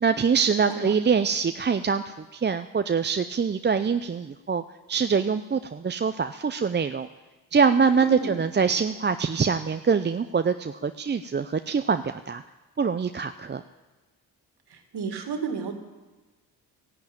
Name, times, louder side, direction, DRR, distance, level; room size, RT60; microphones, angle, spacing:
voice 1, 0.0-4.6 4.9-7.1 7.5-12.4 12.8-13.6, right 6 dB, 25° right, 9 dB, 0.6 m, -24 dB
voice 2, 8.0-8.4 14.7-15.7, right 4 dB, 65° right, 6 dB, 2.2 m, -32 dB
14.0 x 10.5 x 8.9 m, 1.2 s
supercardioid pair, 50°, 42 cm